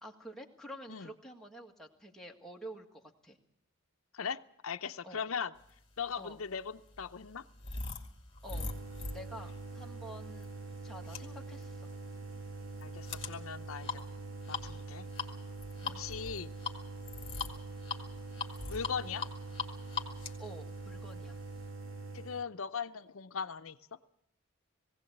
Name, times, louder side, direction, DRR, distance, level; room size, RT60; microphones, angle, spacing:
voice 1, 0.0-3.4 5.0-5.3 6.2-6.4 8.4-10.5 10.8-11.9 15.8-16.1 20.4-21.4, right 1 dB, ahead, -1 dB, 1.8 m, -49 dB
voice 2, 4.1-5.5 6.0-7.4 12.8-14.0 14.5-15.1 15.8-16.5 18.7-19.3 22.1-23.8, left 6 dB, 75° left, 9 dB, 0.7 m, -39 dB
sound 1, 6.0-21.7, left 5 dB, 25° left, 2.0 m, -43 dB
sound 2, 8.5-22.4, right 3 dB, 65° right, 1.2 m, -44 dB
19.5 x 16.5 x 8.0 m, 0.76 s
head